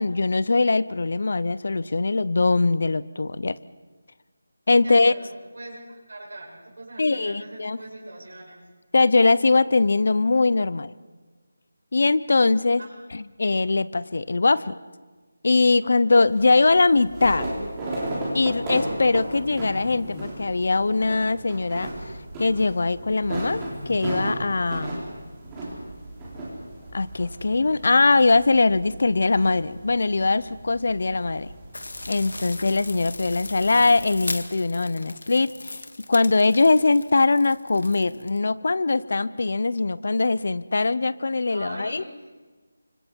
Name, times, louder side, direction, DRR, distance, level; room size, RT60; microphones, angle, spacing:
voice 1, 0.0-3.6 4.7-5.1 7.0-7.8 8.9-10.9 11.9-12.8 13.1-14.8 15.4-17.5 18.3-21.9 22.4-25.0 26.9-31.5 32.1-35.8 36.1-42.0, left 3 dB, 45° left, 18 dB, 0.6 m, -21 dB
voice 2, 4.8-8.6 12.8-12.9 41.5-42.3, right 2 dB, 60° right, -2 dB, 6.7 m, -40 dB
sound 1, 16.3-34.1, right 1 dB, 10° right, 3.2 m, -35 dB
sound 2, 19.1-20.3 20.9-21.5 21.8-22.8 23.4-24.0 24.5-24.8 25.9-26.8, left 6 dB, 15° left, 0.8 m, -47 dB
sound 3, 31.7-38.4, left 2 dB, 75° left, 1.9 m, -38 dB
29.5 x 25.5 x 4.5 m, 1.3 s
figure-of-eight pair, 180°, 0 cm